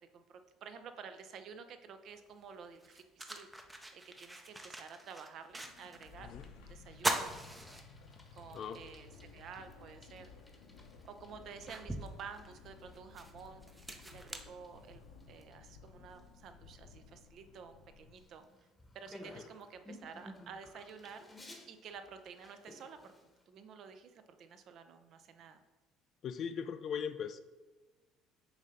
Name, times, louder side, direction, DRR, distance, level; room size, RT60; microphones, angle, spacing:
voice 1, 0.1-3.5 3.9-7.4 8.3-10.3 11.0-15.0 15.3-18.5 18.9-21.3 21.7-23.1 23.5-25.6, right 6 dB, 55° right, 9 dB, 0.5 m, -51 dB
sound 1, 2.1-2.2 2.7-6.1 6.4-6.5 6.9-8.4 8.9-9.0 10.4-10.5 11.1-15.3, right 1 dB, 10° right, 0.5 m, -41 dB
sound 2, 5.3-18.5, left 5 dB, 85° left, 0.9 m, -57 dB
Bicycle, 6.9-23.4, left 1 dB, 10° left, 1.0 m, -58 dB
voice 2, 26.2-27.4, left 7 dB, 45° left, 11 dB, 0.4 m, -39 dB
7.0 x 2.8 x 5.1 m, 1.2 s
cardioid pair, 125°, 0 cm